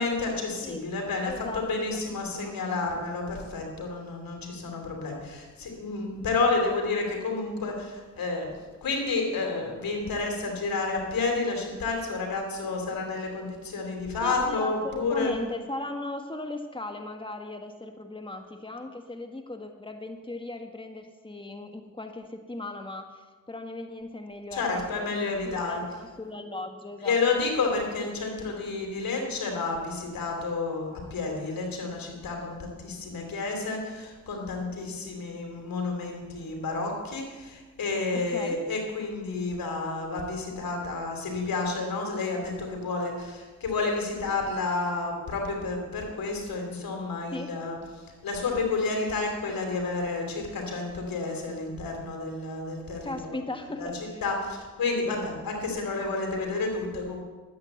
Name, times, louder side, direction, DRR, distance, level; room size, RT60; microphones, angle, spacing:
voice 1, 0.0-8.5 8.8-15.4 24.5-25.8 27.0-53.4 53.8-53.9 54.2-57.2, left 3 dB, 75° left, 1 dB, 3.1 m, -30 dB
voice 2, 1.2-2.0 2.4-2.5 14.2-24.6 24.9-27.4 38.3-38.6 47.3-47.6 53.0-54.2, left 2 dB, 15° left, 5 dB, 1.6 m, -38 dB
11.5 x 8.4 x 8.0 m, 1.3 s
supercardioid pair, 40°, 35 cm